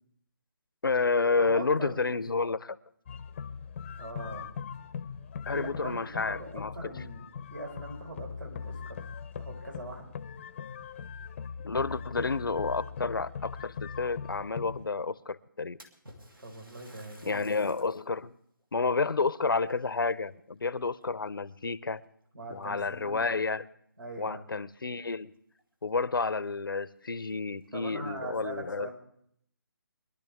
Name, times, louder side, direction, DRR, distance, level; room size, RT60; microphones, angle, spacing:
voice 1, 0.8-2.8 5.5-6.9 11.6-15.8 17.3-18.4 18.7-22.0 22.5-23.6 24.2-25.3 25.8-28.9, left 4 dB, 75° left, 0.7 m, -30 dB
voice 2, 1.4-2.2 4.0-4.5 5.5-9.0 9.4-10.1 16.4-17.5 22.3-23.3 24.0-24.6 27.7-28.9, right 1 dB, 70° right, 4.8 m, -42 dB
sound 1, 3.1-14.9, left 6 dB, 35° left, 0.6 m, -41 dB
Splash splatter, 15.8-18.1 18.6-18.7 19.6-20.6 21.0-21.5 22.3-22.4 22.8-22.9 25.1-25.2 25.5-25.6 26.2-26.3 26.7-26.8 27.5-28.1, right 1 dB, 85° right, 2.5 m, -56 dB
23.5 x 12.0 x 3.5 m
figure-of-eight pair, 150°, 11 cm